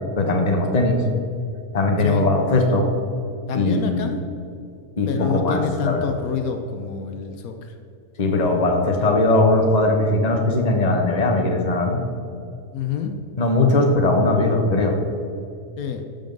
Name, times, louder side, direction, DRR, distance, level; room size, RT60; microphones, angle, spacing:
voice 1, 0.2-1.0 1.7-2.9 3.5-4.2 5.0-6.1 8.2-12.0 13.4-15.0, left 2 dB, 30° left, 3 dB, 1.2 m, -19 dB
voice 2, 3.5-4.2 5.1-7.7 12.7-13.2 15.8-16.0, left 7 dB, 75° left, 5 dB, 1.2 m, -27 dB
12.5 x 5.6 x 5.3 m, 2.6 s
omnidirectional pair, 1.6 m